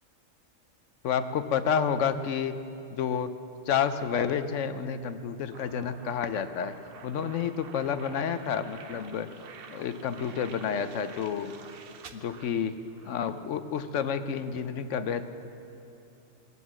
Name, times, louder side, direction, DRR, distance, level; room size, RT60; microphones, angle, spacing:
voice 1, 1.0-2.6 2.9-3.3 3.7-6.7 7.0-9.3 9.7-11.6 12.1-12.8 13.0-15.2, left 7 dB, 70° left, 11 dB, 1.0 m, -30 dB
sound 1, 5.5-13.3, right 6 dB, 55° right, 0.8 m, -49 dB
20.0 x 8.0 x 7.4 m, 2.8 s
omnidirectional pair, 1.3 m